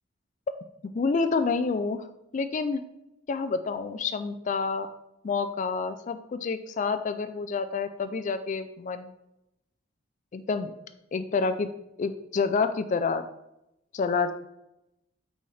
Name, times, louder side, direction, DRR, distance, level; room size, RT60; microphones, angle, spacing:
voice 1, 0.9-2.1 2.3-2.8 3.3-4.9 5.2-9.1 10.3-10.7 11.1-11.7 12.0-13.2 13.9-14.3, left 4 dB, 40° left, 10 dB, 0.3 m, -28 dB
9.1 x 4.1 x 3.3 m, 0.87 s
head